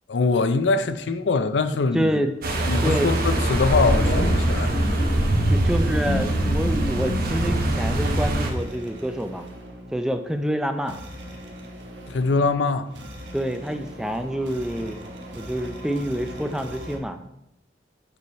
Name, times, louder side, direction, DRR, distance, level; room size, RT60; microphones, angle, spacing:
voice 1, 0.1-2.2 2.7-4.7 12.1-12.9, left 4 dB, 75° left, 0.5 m, -23 dB
voice 2, 1.9-2.3 2.8-3.1 5.5-9.4 9.9-11.0 13.3-15.0 15.3-17.2, equal, 5° right, 0.4 m, -27 dB
sound 1, 2.4-8.5, right 1 dB, 55° right, 1.0 m, -24 dB
sound 2, 3.5-8.5, equal, 55° left, 1.2 m, -26 dB
sound 3, 8.0-17.0, equal, 75° right, 1.2 m, -41 dB
6.8 x 4.8 x 4.2 m
head